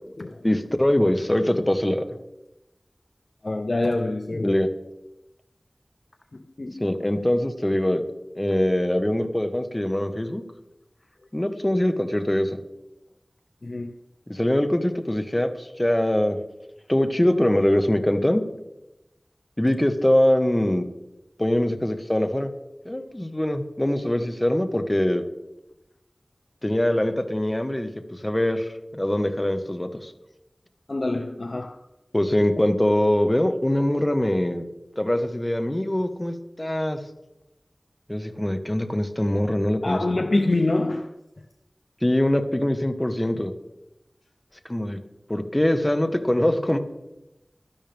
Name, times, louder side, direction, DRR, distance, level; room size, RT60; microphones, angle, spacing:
voice 1, 0.4-2.0 4.4-4.7 6.8-8.0 8.3-10.4 11.3-12.6 14.3-16.4 16.9-18.4 19.6-20.8 21.4-22.5 22.8-25.2 26.6-30.1 32.1-34.6 35.0-37.0 38.1-40.0 42.0-43.5 44.6-45.0 45.3-46.8, left 1 dB, 25° left, 1.5 m, -23 dB
voice 2, 3.4-4.6 6.3-6.8 8.5-8.6 13.6-13.9 22.9-23.1 30.9-31.8 39.8-41.1, left 2 dB, 70° left, 0.7 m, -26 dB
16.5 x 12.5 x 3.6 m
wide cardioid pair, 40°, 0 cm